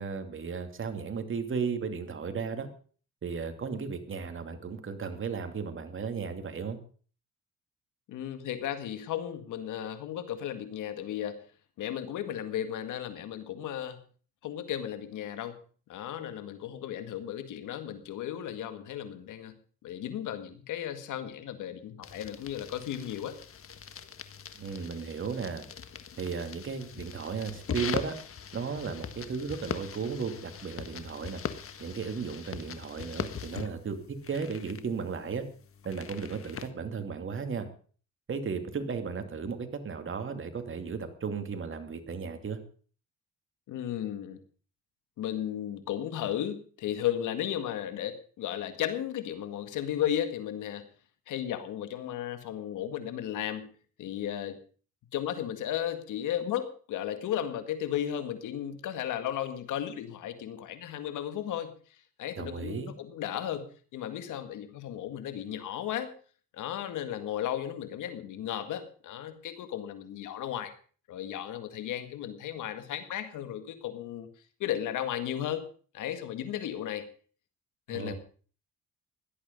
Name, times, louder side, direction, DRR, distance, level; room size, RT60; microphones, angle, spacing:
voice 1, 0.0-2.7 3.2-6.8 24.6-25.6 26.2-28.1 28.5-31.4 31.8-35.4 35.8-37.7 38.3-42.6 62.4-62.9 77.9-78.1, right 5 dB, 40° right, 7 dB, 2.7 m, -35 dB
voice 2, 8.1-11.4 11.8-14.0 14.4-15.6 15.9-23.4 43.7-44.4 45.2-50.8 51.3-54.6 55.1-66.1 66.5-70.7 71.1-74.3 74.6-75.6 75.9-77.0 77.9-78.1, left 10 dB, 85° left, 9 dB, 2.0 m, -35 dB
sound 1, 22.0-36.7, left 7 dB, 45° left, 1.6 m, -41 dB
17.0 x 12.0 x 5.4 m, 0.42 s
cardioid pair, 90°, 30 cm